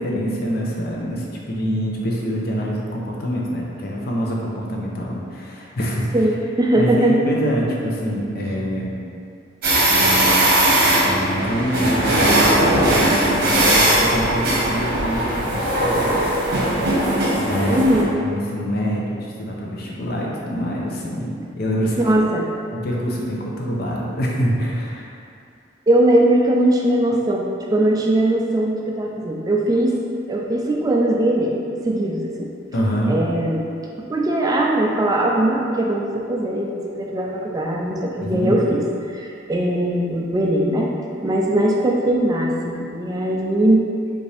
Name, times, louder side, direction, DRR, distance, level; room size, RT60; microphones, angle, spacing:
voice 1, 0.0-6.1 6.7-8.9 9.9-10.3 11.0-16.2 17.3-17.8 18.2-21.3 21.6-22.0 22.7-25.1 32.7-33.2 38.2-38.6, equal, 55° left, -3 dB, 0.7 m, -25 dB
voice 2, 6.1-7.2 17.7-18.2 22.0-22.5 25.9-30.0 30.3-31.6 31.9-32.5 33.1-33.6 34.1-38.8 39.1-40.9 41.2-43.9, right 1 dB, 20° right, -1 dB, 0.3 m, -20 dB
sound 1, 9.6-18.0, right 1 dB, 55° right, 1.0 m, -18 dB
5.2 x 2.6 x 3.3 m, 2.4 s
head